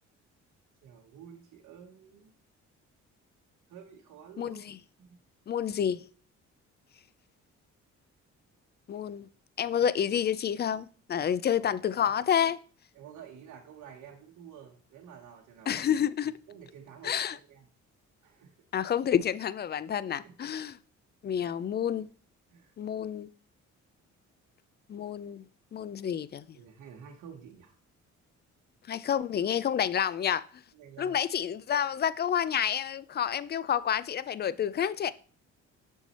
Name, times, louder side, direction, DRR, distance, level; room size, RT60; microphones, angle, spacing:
voice 1, 0.8-2.3 3.7-4.6 5.0-5.2 11.1-11.3 11.6-12.1 12.9-15.8 16.5-17.7 18.2-18.6 20.0-20.4 21.4-21.6 22.5-22.7 26.5-27.8 30.7-31.2 34.5-34.7, right 8 dB, 80° right, 1.0 m, -50 dB
voice 2, 5.5-6.0 8.9-9.3 9.6-12.6 15.7-16.3 17.0-17.4 18.7-20.8 21.2-22.1 22.8-23.3 24.9-25.4 25.7-26.6 28.9-30.4 31.0-35.1, left 9 dB, 35° left, 0.4 m, -29 dB
6.0 x 5.6 x 4.1 m
cardioid pair, 90°, 30 cm